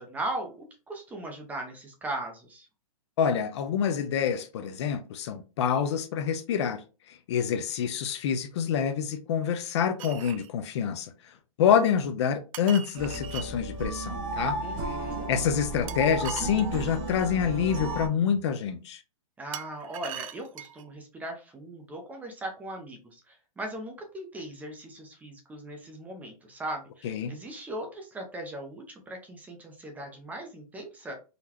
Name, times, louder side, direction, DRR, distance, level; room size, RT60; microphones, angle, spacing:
voice 1, 0.0-2.7 14.6-15.3 19.4-31.1, right 1 dB, 10° right, 0.5 m, -39 dB
voice 2, 3.2-6.8 7.1-11.1 11.6-14.6 14.9-15.0 15.3-19.0 27.0-27.4, left 7 dB, 50° left, 0.5 m, -27 dB
sound 1, 10.0-10.5 12.5-13.5 15.9-17.3 19.5-20.9, right 10 dB, 65° right, 0.4 m, -41 dB
sound 2, 13.0-18.1, right 2 dB, 30° right, 0.9 m, -34 dB
3.9 x 2.2 x 2.8 m
hypercardioid pair, 140°, 18 cm